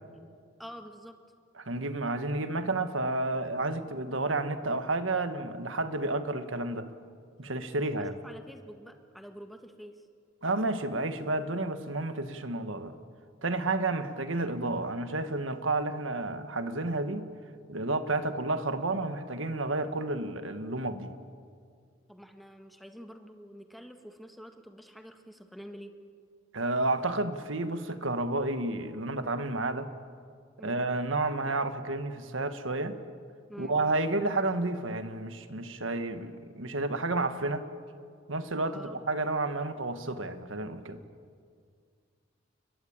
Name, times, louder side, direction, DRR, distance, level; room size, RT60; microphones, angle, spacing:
voice 1, 0.6-1.2 8.0-10.0 22.1-26.0 30.6-30.8 33.5-33.8 38.7-39.0, equal, ahead, 5 dB, 1.6 m, -47 dB
voice 2, 1.6-6.9 7.4-8.1 10.4-12.9 13.4-17.2 17.7-21.1 26.5-29.9 30.6-33.0 33.6-37.7 38.3-41.0, right 2 dB, 85° right, 9 dB, 1.7 m, -31 dB
30.0 x 22.5 x 8.8 m, 2.2 s
head